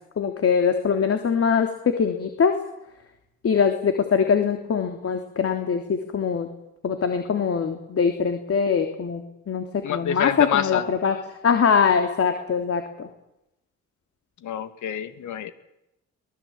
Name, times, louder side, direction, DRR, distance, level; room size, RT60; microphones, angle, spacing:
voice 1, 0.2-1.7 2.0-2.5 3.4-6.5 6.8-11.2 11.4-13.1, left 6 dB, 50° left, 6 dB, 3.2 m, -22 dB
voice 2, 9.8-10.8 14.4-15.5, left 9 dB, 75° left, 10 dB, 2.6 m, -26 dB
23.0 x 20.0 x 8.8 m, 0.86 s
cardioid pair, 90°, 30 cm